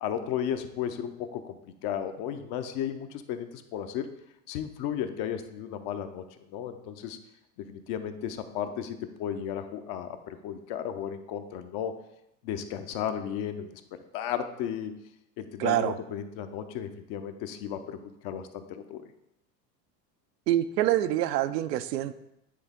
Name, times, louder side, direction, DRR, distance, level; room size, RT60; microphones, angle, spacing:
voice 1, 0.0-4.1 4.5-7.2 7.6-12.0 12.4-14.9 15.4-19.1, left 9 dB, 50° left, 8 dB, 0.7 m, -34 dB
voice 2, 15.6-15.9 20.5-22.1, right 13 dB, 70° right, 12 dB, 0.6 m, -26 dB
9.5 x 3.5 x 3.5 m, 0.84 s
hypercardioid pair, 85°, 50 cm